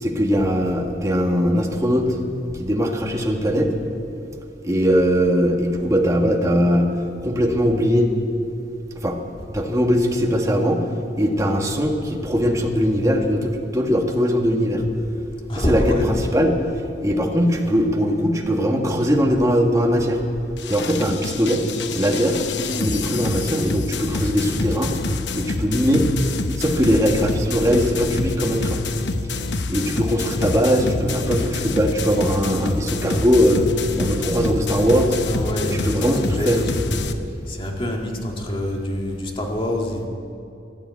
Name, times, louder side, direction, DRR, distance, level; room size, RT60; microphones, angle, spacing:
voice 1, 0.0-3.7 4.6-6.9 7.2-8.1 9.0-9.2 9.5-10.8 11.2-14.8 15.5-15.8 16.3-16.6 17.0-20.2 20.7-21.6 22.0-22.4 22.8-25.0 25.3-26.1 26.5-28.8 29.7-33.7 34.0-35.2 35.7-36.6, equal, 20° right, 2 dB, 1.5 m, -20 dB
voice 2, 15.5-16.1 35.3-37.0 37.5-40.1, left 1 dB, 30° left, 1 dB, 2.0 m, -26 dB
sound 1, 20.6-37.1, left 3 dB, 85° left, 0.8 m, -27 dB
15.0 x 10.5 x 8.3 m, 2.7 s
head